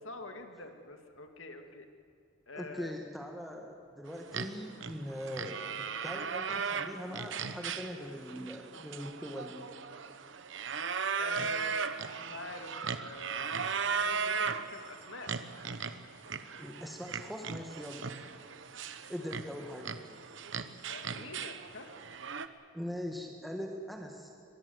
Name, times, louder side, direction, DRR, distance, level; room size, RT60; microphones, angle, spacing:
voice 1, 0.0-1.9 2.5-2.9 11.1-15.3 20.9-21.9, left 2 dB, 75° left, 6 dB, 2.2 m, -46 dB
voice 2, 2.6-9.6 16.6-18.1 19.1-20.0 22.7-24.3, equal, ahead, 2 dB, 1.6 m, -41 dB
sound 1, 4.2-22.5, right 6 dB, 65° right, 1.0 m, -37 dB
22.5 x 22.0 x 7.9 m, 2.3 s
head